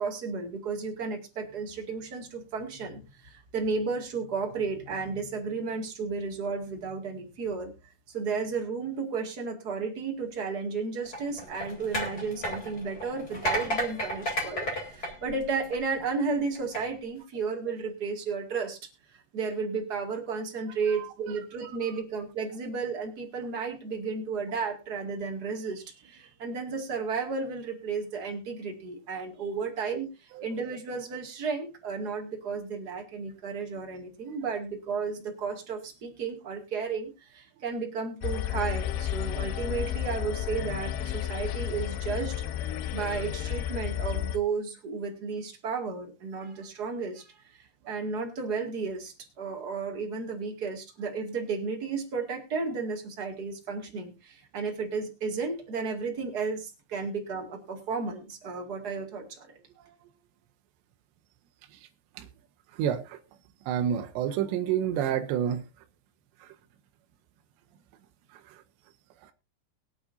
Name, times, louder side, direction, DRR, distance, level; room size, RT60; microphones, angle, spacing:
voice 1, 0.0-7.7 8.1-18.8 19.3-30.1 30.4-59.5, right 5 dB, 40° right, 2 dB, 1.4 m, -33 dB
sound 1, 11.1-16.0 16.6-16.8, equal, 20° left, 4.1 m, -33 dB
voice 2, 20.9-21.4 30.4-30.5 59.8-59.9 62.2-62.3 62.7-63.2 63.7-65.6 66.4-66.5 68.5-68.6 69.2-69.3, right 9 dB, 75° right, 5 dB, 3.0 m, -29 dB
sound 2, 38.2-44.4, left 11 dB, 80° left, 2.3 m, -32 dB
23.0 x 8.1 x 2.7 m, 0.26 s
omnidirectional pair, 5.4 m